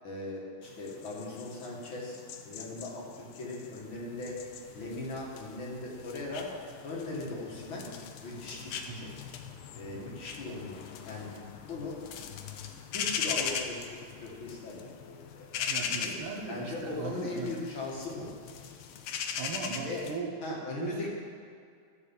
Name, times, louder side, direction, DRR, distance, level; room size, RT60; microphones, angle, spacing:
voice 1, 0.0-2.2 2.4-4.4 4.7-6.5 6.8-7.9 8.2-9.1 9.7-10.7 11.0-11.3 11.6-12.0 12.9-16.1 16.5-18.3 19.8-20.0 20.4-21.1, left 2 dB, 65° left, -3 dB, 2.6 m, -39 dB
sound 1, 0.6-20.2, left 7 dB, 80° left, 1.6 m, -40 dB
voice 2, 8.7-9.1 15.7-17.5 19.3-21.1, right 5 dB, 80° right, 3 dB, 1.9 m, -39 dB
12.5 x 4.7 x 7.2 m, 2.3 s
omnidirectional pair, 2.4 m